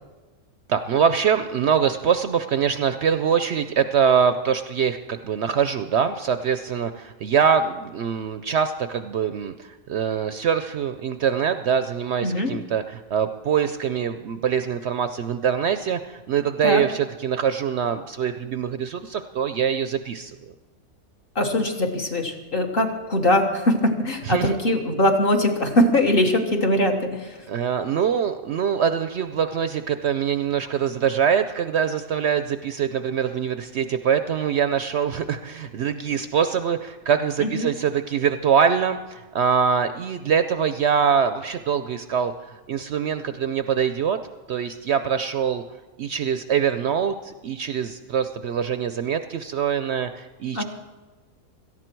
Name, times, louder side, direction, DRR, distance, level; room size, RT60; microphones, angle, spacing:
voice 1, 0.7-20.3 24.3-24.6 27.5-44.2 44.5-45.6 46.0-50.6, right 7 dB, 65° right, 10 dB, 0.7 m, -23 dB
voice 2, 21.3-27.4 37.4-37.7 50.5-50.6, left 1 dB, 40° left, 3 dB, 1.5 m, -21 dB
17.5 x 13.5 x 4.5 m, 1.2 s
omnidirectional pair, 1.4 m